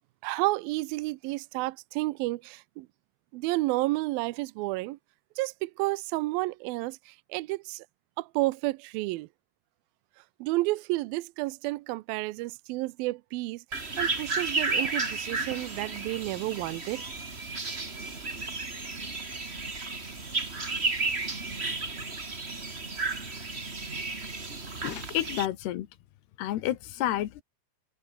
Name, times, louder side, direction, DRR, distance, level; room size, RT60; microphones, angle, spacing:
voice 1, 0.2-2.9 3.3-5.0 5.4-7.9 8.2-9.3 10.4-17.0, right 20 dB, 85° right, 2.2 m, -31 dB
sound 1, 13.7-25.5, right 3 dB, 20° right, 1.9 m, -33 dB
voice 2, 24.8-25.9 26.4-27.4, left 13 dB, 80° left, 3.4 m, -30 dB
omnidirectional pair, 4.7 m